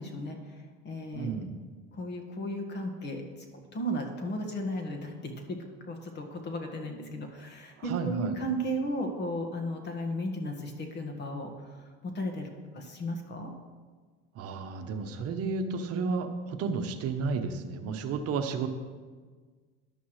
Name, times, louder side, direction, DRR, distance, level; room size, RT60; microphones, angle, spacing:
voice 1, 0.0-1.3 1.9-3.2 3.7-5.6 5.8-12.5 12.7-13.5, equal, 35° left, 3 dB, 1.7 m, -35 dB
voice 2, 1.1-1.5 7.8-8.4 14.3-18.7, right 5 dB, 55° right, 7 dB, 1.0 m, -32 dB
14.0 x 11.0 x 3.2 m, 1.5 s
cardioid pair, 115°, 29 cm